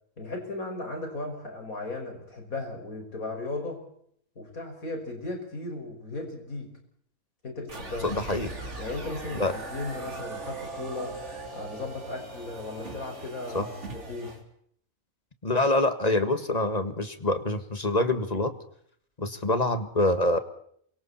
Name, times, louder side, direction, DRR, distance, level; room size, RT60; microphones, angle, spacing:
voice 1, 0.2-3.8 4.4-6.7 7.4-8.1 8.8-11.2 11.5-14.3, left 2 dB, 65° left, 4 dB, 6.0 m, -36 dB
sound 1, 7.7-14.4, right 3 dB, 50° right, 3.8 m, -40 dB
voice 2, 8.0-8.5 9.3-9.6 13.5-13.7 15.4-18.5 19.2-20.4, left 2 dB, 25° left, 10 dB, 1.8 m, -25 dB
28.5 x 24.5 x 4.3 m, 0.65 s
omnidirectional pair, 1.6 m